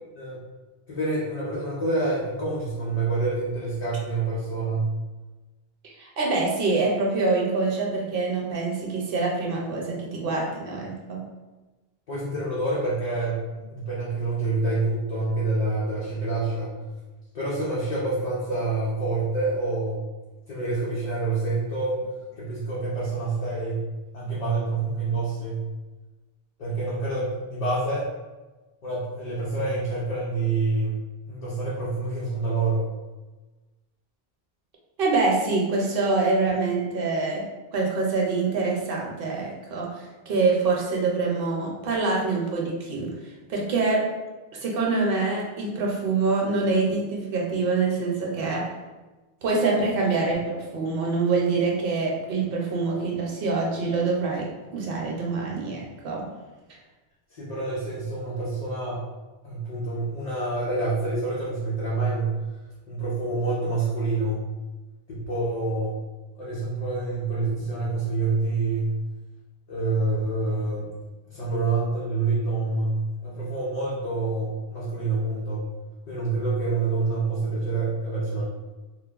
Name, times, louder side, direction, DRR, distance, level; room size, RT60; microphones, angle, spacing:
voice 1, 0.9-4.9 12.1-13.4 13.7-16.8 17.3-20.0 20.5-23.9 24.1-25.7 26.6-28.1 28.8-31.0 31.3-32.9 57.3-59.0 59.4-62.4 62.9-64.5 65.1-65.9 66.3-69.0 69.7-70.9 71.3-75.6 76.1-78.4, right 3 dB, 50° left, -7 dB, 0.6 m, -27 dB
voice 2, 6.0-11.2 35.0-37.5 37.7-39.9 40.3-43.1 43.5-44.0 44.6-48.7 49.4-56.3, right 3 dB, 65° right, -1 dB, 0.8 m, -25 dB
3.2 x 2.1 x 2.3 m, 1.2 s
omnidirectional pair, 1.1 m